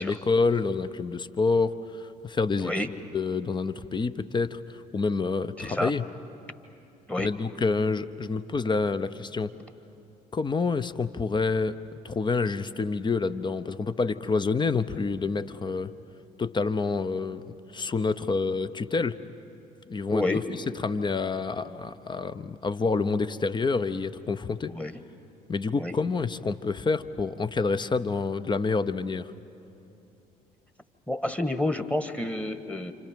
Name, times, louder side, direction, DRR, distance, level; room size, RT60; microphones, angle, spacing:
voice 1, 0.0-2.7 3.1-6.0 7.2-9.5 10.3-11.7 12.0-15.9 16.4-17.4 17.7-19.2 19.9-20.4 20.8-24.7 25.5-29.3, left 4 dB, 25° left, 12 dB, 0.9 m, -27 dB
voice 2, 5.6-5.9 7.1-7.3 20.1-20.5 24.7-25.0 25.8-25.9 31.1-32.9, left 1 dB, 5° left, 9 dB, 1.5 m, -29 dB
29.0 x 27.0 x 5.2 m, 2.8 s
figure-of-eight pair, 55°, 19 cm